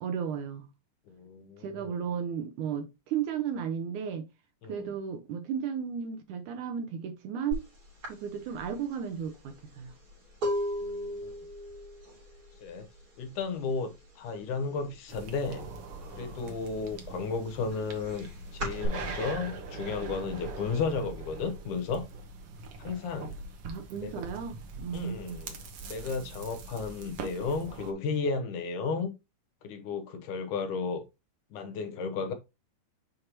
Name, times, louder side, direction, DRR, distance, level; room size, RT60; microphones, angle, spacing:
voice 1, 0.0-0.7 1.6-4.3 4.7-7.6 8.1-9.9 23.6-25.4, right 7 dB, 75° right, 2.0 m, -34 dB
voice 2, 1.1-2.0 4.6-4.9 10.8-11.3 12.6-12.9 13.2-15.7 16.2-22.1 22.8-23.4 24.0-24.2 24.9-25.6 25.8-29.1 29.6-31.0 31.5-32.3, left 4 dB, 70° left, 2.2 m, -34 dB
sound 1, 7.5-7.7 8.0-13.7 14.0-14.5 14.8-15.9 16.3-18.9, equal, 25° right, 3.9 m, -36 dB
sound 2, 15.1-27.9, right 3 dB, 60° right, 1.8 m, -42 dB
6.5 x 5.6 x 2.9 m
omnidirectional pair, 4.0 m